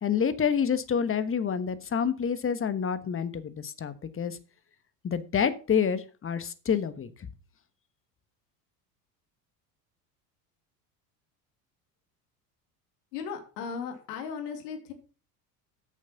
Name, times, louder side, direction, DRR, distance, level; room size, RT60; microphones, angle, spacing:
voice 1, 0.0-4.4 5.0-7.3, left 7 dB, 25° left, 13 dB, 1.2 m, -28 dB
voice 2, 13.1-14.9, left 6 dB, 75° left, 6 dB, 2.8 m, -36 dB
9.0 x 6.5 x 5.7 m, 0.35 s
hypercardioid pair, 80°, 47 cm